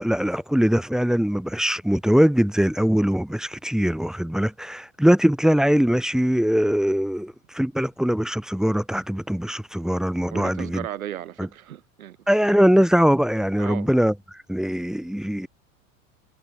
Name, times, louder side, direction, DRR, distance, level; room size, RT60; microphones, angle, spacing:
voice 1, 0.0-10.8 11.4-11.5 12.3-14.1 14.5-15.5, equal, ahead, 1.4 m, -21 dB
voice 2, 10.3-12.2 13.6-13.9, right 11 dB, 90° right, 2.7 m, -35 dB
hypercardioid pair, 100°, 41 cm